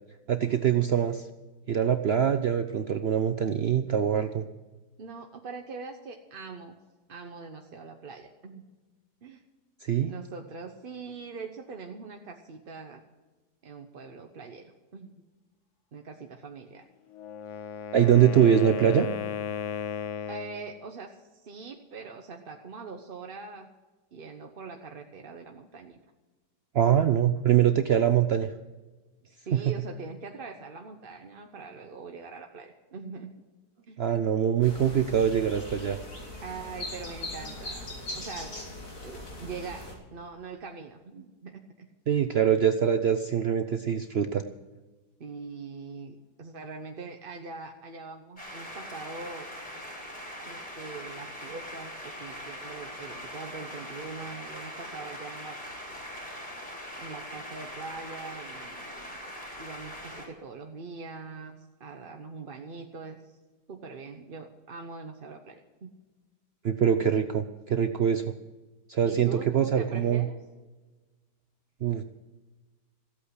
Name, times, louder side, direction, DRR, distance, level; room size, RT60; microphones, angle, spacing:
voice 1, 0.3-1.3 1.7-4.4 9.8-10.1 17.9-19.1 26.7-28.5 29.5-29.6 34.0-36.0 42.1-44.4 66.6-68.3 68.9-69.3 69.5-70.2 71.8-72.0, right 9 dB, 70° right, 9 dB, 0.5 m, -23 dB
voice 2, 5.0-6.8 7.1-8.7 9.2-9.4 10.1-13.0 13.6-15.2 15.9-16.9 20.3-23.7 24.1-26.0 29.3-33.3 33.9-34.0 36.4-37.9 38.1-38.6 39.0-41.9 45.2-49.5 50.4-55.8 57.0-59.2 59.6-63.4 63.7-65.9 69.0-70.4, right 4 dB, 40° right, 3 dB, 0.9 m, -42 dB
Wind instrument woodwind instrument, 17.1-20.7, left 8 dB, 65° left, 0.8 m, -35 dB
sound 1, 34.6-39.9, left 1 dB, 85° left, 4.1 m, -40 dB
sound 2, 48.4-60.3, equal, 25° left, 4.2 m, -41 dB
15.0 x 8.5 x 8.0 m, 1.2 s
omnidirectional pair, 1.8 m